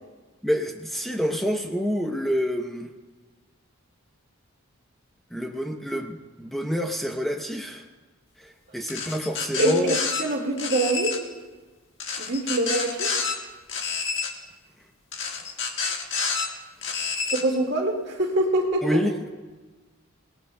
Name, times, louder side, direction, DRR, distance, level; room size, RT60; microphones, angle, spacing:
voice 1, 0.4-2.9 5.3-7.9 8.4-10.0 18.8-19.3, equal, ahead, 2 dB, 0.7 m, -27 dB
sound 1, 8.9-10.2 10.6-11.2 12.0-13.3 13.7-14.3 15.1-16.5 16.8-17.4, left 5 dB, 55° left, 1.6 m, -28 dB
voice 2, 9.6-11.2 12.2-13.1 17.3-19.0, right 2 dB, 55° right, 1 dB, 2.0 m, -25 dB
28.0 x 18.5 x 2.2 m, 1.3 s
head